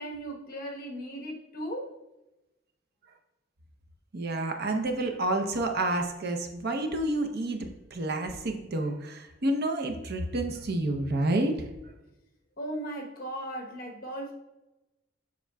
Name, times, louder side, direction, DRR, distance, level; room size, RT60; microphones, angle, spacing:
voice 1, 0.0-1.9 12.6-14.3, right 1 dB, 50° left, 1 dB, 1.0 m, -37 dB
voice 2, 4.1-11.7, right 2 dB, 55° right, 5 dB, 0.7 m, -29 dB
7.2 x 5.8 x 2.3 m, 0.97 s
head